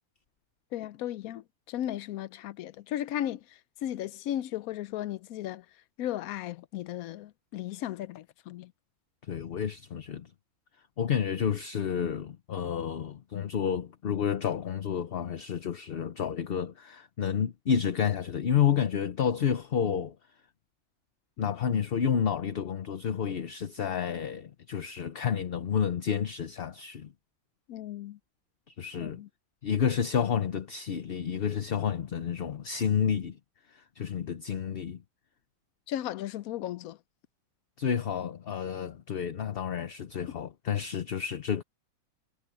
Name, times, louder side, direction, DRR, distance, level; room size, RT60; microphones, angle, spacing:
voice 1, 0.7-3.4 3.8-5.6 6.0-8.7 27.7-28.2 29.0-29.3 35.9-37.0, left 12 dB, 85° left, 1.0 m, -35 dB
voice 2, 9.3-10.3 11.0-20.1 21.4-27.1 28.7-29.2 29.6-33.4 34.0-35.0 37.8-41.6, left 8 dB, 50° left, 0.9 m, -30 dB
omnidirectional pair, 1.5 m